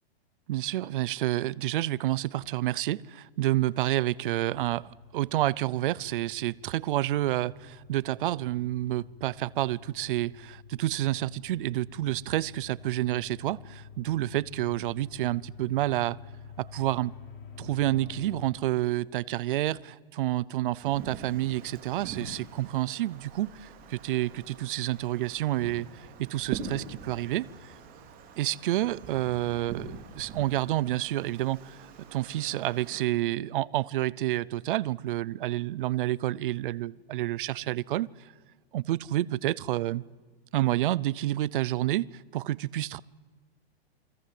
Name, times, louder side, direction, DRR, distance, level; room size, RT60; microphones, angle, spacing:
voice 1, 0.5-16.2 16.6-17.1 17.6-27.7 28.4-38.1 38.7-40.0 40.5-43.0, right 15 dB, 55° right, 22 dB, 0.7 m, -29 dB
sound 1, 4.5-18.4, left 7 dB, 65° left, 5.3 m, -49 dB
Wind, 20.7-33.0, right 5 dB, 25° right, 3.7 m, -44 dB
29.0 x 22.0 x 7.7 m, 1.4 s
hypercardioid pair, 155°, 32 cm